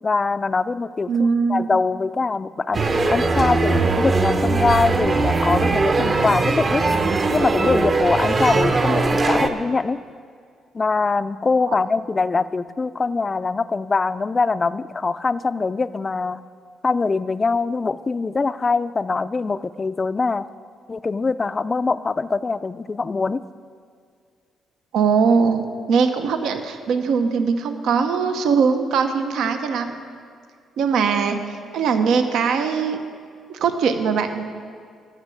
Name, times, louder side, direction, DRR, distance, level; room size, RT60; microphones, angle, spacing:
voice 1, 0.0-1.1 1.5-6.8 7.3-10.0 10.7-16.4 16.8-20.5 20.9-23.4, left 4 dB, 30° left, 14 dB, 0.4 m, -23 dB
voice 2, 1.1-1.8 24.9-30.0 30.8-33.0 33.5-34.4, right 5 dB, 80° right, 7 dB, 0.8 m, -21 dB
sound 1, 2.7-9.5, right 3 dB, 35° right, 0.8 m, -20 dB
13.5 x 6.2 x 7.8 m, 2.1 s
cardioid pair, 90°, 0 cm